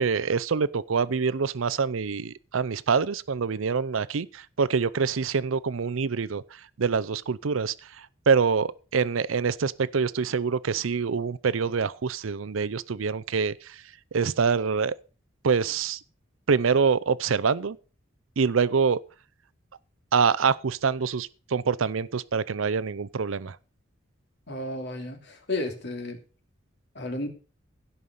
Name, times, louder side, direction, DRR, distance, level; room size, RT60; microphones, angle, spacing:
voice 1, 0.0-6.4 6.8-13.8 14.1-14.9 15.4-16.0 16.5-17.8 18.4-19.0 20.1-23.6, right 5 dB, 85° right, 0.6 m, -25 dB
voice 2, 24.5-26.2 26.9-27.3, left 2 dB, 60° left, 3.0 m, -32 dB
16.5 x 5.6 x 6.5 m
head